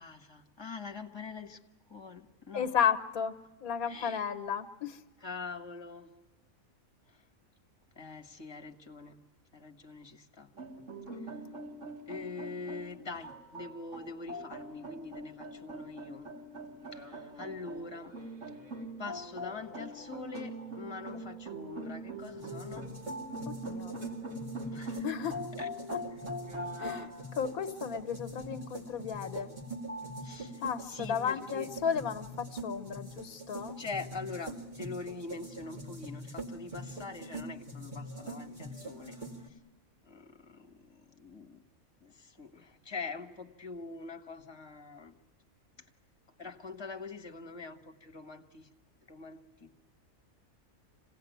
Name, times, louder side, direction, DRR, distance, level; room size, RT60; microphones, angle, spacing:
voice 1, 0.0-1.6 1.9-2.7 3.8-4.2 5.2-6.1 7.1-7.2 7.9-9.2 9.5-10.5 11.3-11.4 12.1-16.3 16.9-18.1 19.0-22.9 24.7-25.1 25.6-25.7 26.1-26.2 30.2-31.7 33.8-39.2 39.5-39.6 40.1-41.6 42.0-45.1 46.4-48.7 49.1-49.9, left 4 dB, 20° left, 5 dB, 1.4 m, -44 dB
voice 2, 2.5-3.4 3.6-5.0 23.5-23.9 25.0-25.4 25.9-26.0 26.8-29.5 30.6-33.8, left 7 dB, 85° left, 11 dB, 1.5 m, -33 dB
sound 1, 10.5-27.1, right 1 dB, 60° right, 3.8 m, -42 dB
sound 2, 19.9-31.2, right 1 dB, 80° right, 4.9 m, -50 dB
sound 3, 22.2-39.5, right 1 dB, 30° right, 2.5 m, -44 dB
26.5 x 17.5 x 9.2 m, 1.2 s
omnidirectional pair, 1.5 m